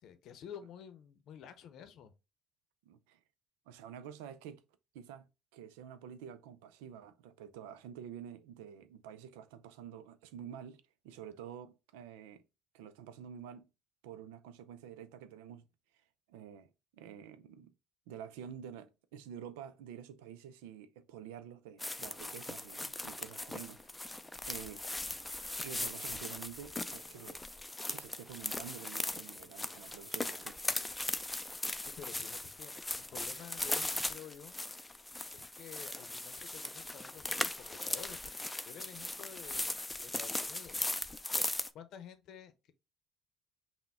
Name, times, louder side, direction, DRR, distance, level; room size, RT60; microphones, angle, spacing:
voice 1, 0.0-2.1 31.8-34.6 35.3-38.2 38.7-40.8 41.7-42.7, left 8 dB, 65° left, 0.7 m, -51 dB
voice 2, 2.9-3.2 3.7-4.6 4.9-12.4 12.7-13.7 14.0-15.6 16.3-17.7 18.1-23.9 24.5-24.8 25.6-27.4 27.9-30.6, right 9 dB, 80° right, 0.4 m, -49 dB
sound 1, 21.8-41.7, left 2 dB, 15° left, 0.4 m, -39 dB
5.7 x 2.2 x 3.5 m
hypercardioid pair, 60°, 0 cm